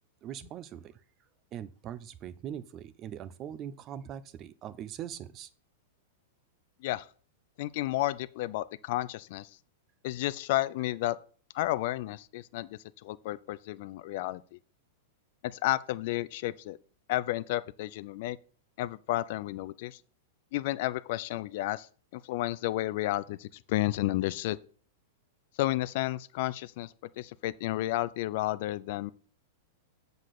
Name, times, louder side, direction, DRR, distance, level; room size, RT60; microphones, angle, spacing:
voice 1, 0.2-1.0 1.5-5.5, right 10 dB, 35° right, 0.7 m, -41 dB
voice 2, 7.6-9.5 10.0-11.2 11.5-14.4 15.4-16.8 17.1-18.4 18.8-20.0 20.5-21.9 22.1-24.6 25.6-29.1, left 16 dB, 60° left, 0.5 m, -32 dB
7.4 x 4.0 x 6.6 m
hypercardioid pair, 125°, 0 cm